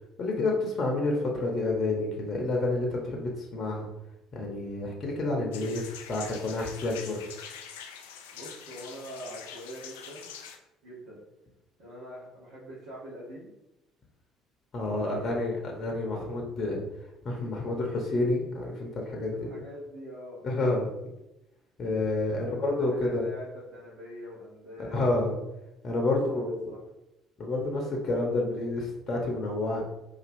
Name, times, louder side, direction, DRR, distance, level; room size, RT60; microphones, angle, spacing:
voice 1, 0.2-3.9 4.3-7.2 14.7-19.5 20.4-20.9 21.8-23.3 24.8-25.4 25.8-26.7 27.4-29.8, left 2 dB, 45° left, 0 dB, 0.8 m, -29 dB
sound 1, 5.5-10.6, left 7 dB, 75° left, 0.4 m, -44 dB
voice 2, 8.3-10.3 10.8-11.2 11.8-13.5 15.0-15.3 19.3-20.5 22.4-25.0 26.3-26.4 26.7-26.8, equal, 65° right, -8 dB, 1.1 m, -43 dB
4.2 x 2.7 x 2.6 m, 0.92 s
hypercardioid pair, 55°, 0 cm